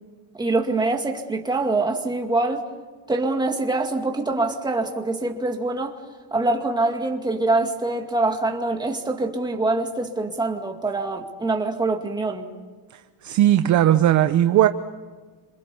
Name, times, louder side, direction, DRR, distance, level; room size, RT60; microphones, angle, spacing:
voice 1, 0.4-2.6 3.1-5.9 6.3-12.5, right 2 dB, 10° right, 2.2 m, -24 dB
voice 2, 13.2-14.7, right 12 dB, 35° right, 0.8 m, -17 dB
28.0 x 26.5 x 7.0 m
cardioid pair, 160°, 48 cm